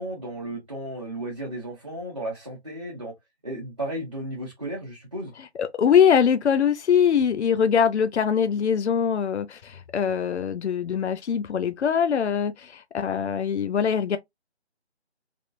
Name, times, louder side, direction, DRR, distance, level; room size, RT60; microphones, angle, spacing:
voice 1, 0.0-3.1 3.4-5.3, right 1 dB, 25° right, 0.7 m, -34 dB
voice 2, 5.6-14.2, left 7 dB, 75° left, 0.5 m, -22 dB
3.5 x 2.3 x 2.5 m
figure-of-eight pair, 175°, 34 cm